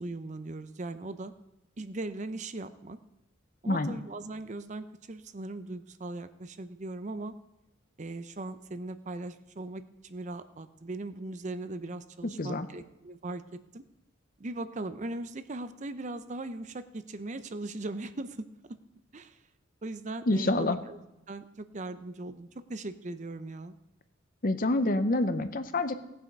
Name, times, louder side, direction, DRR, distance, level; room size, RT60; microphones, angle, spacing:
voice 1, 0.0-1.3 1.8-3.0 3.6-7.3 8.0-13.8 14.4-18.8 19.1-19.4 19.8-21.0 21.3-23.7, right 2 dB, 35° right, 12 dB, 0.5 m, -39 dB
voice 2, 3.6-4.0 12.4-12.7 20.3-20.8 24.4-26.0, left 2 dB, 45° left, 11 dB, 0.7 m, -27 dB
17.5 x 7.8 x 5.3 m, 0.92 s
head